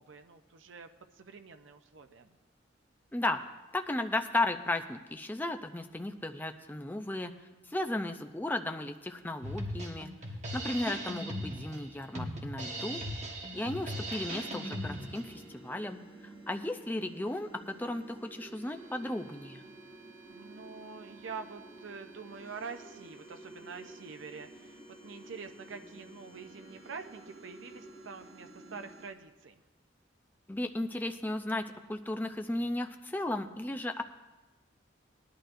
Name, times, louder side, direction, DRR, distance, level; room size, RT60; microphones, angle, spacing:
voice 1, 0.0-2.4 7.5-7.8 10.4-11.0 17.1-17.4 20.3-29.6, right 5 dB, 80° right, 7 dB, 0.6 m, -46 dB
voice 2, 3.7-7.3 7.7-10.1 10.5-13.0 13.5-19.6 30.5-34.0, left 1 dB, 10° left, 6 dB, 0.5 m, -35 dB
Drum kit, 9.4-15.4, equal, 35° right, 1.3 m, -38 dB
sound 1, 13.5-29.1, right 2 dB, 55° right, 2.8 m, -52 dB
18.5 x 11.5 x 2.6 m, 1.1 s
head